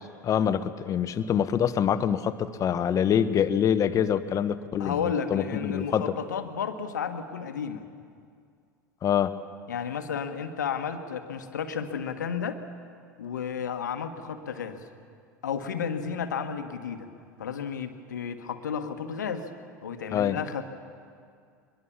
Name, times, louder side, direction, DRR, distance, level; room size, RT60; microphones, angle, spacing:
voice 1, 0.2-6.1 9.0-9.3 20.1-20.4, left 9 dB, 35° left, 12 dB, 1.1 m, -25 dB
voice 2, 4.8-7.8 9.7-12.6 13.2-14.8 15.4-17.1 17.4-19.5 19.8-20.6, left 7 dB, 75° left, 8 dB, 1.5 m, -32 dB
23.0 x 22.0 x 7.3 m, 2.3 s
figure-of-eight pair, 80°, 10 cm